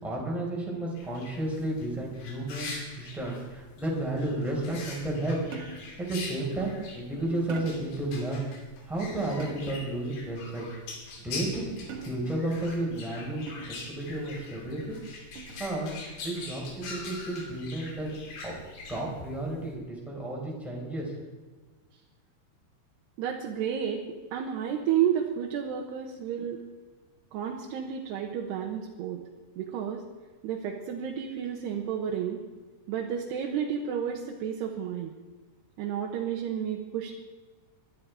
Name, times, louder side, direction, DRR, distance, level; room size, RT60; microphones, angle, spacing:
voice 1, 0.0-5.4 6.0-8.4 8.9-10.7 11.2-13.5 13.8-15.0 15.6-15.9 16.2-16.6 16.9-18.1 18.4-18.5 18.9-21.1, right 1 dB, ahead, -3 dB, 4.3 m, -32 dB
sound 1, 1.0-19.7, left 3 dB, 70° left, 4.8 m, -43 dB
sound 2, 5.5-6.0 7.5-8.0 9.4-9.9 11.9-12.5 13.5-13.9 15.4-15.7, right 5 dB, 60° right, 1.5 m, -43 dB
voice 2, 23.2-24.0 24.3-26.6 27.3-29.2 29.6-30.0 30.4-32.4 32.9-35.1 35.8-37.1, right 9 dB, 85° right, 0 dB, 3.3 m, -31 dB
21.5 x 13.0 x 4.8 m, 1.3 s
omnidirectional pair, 4.7 m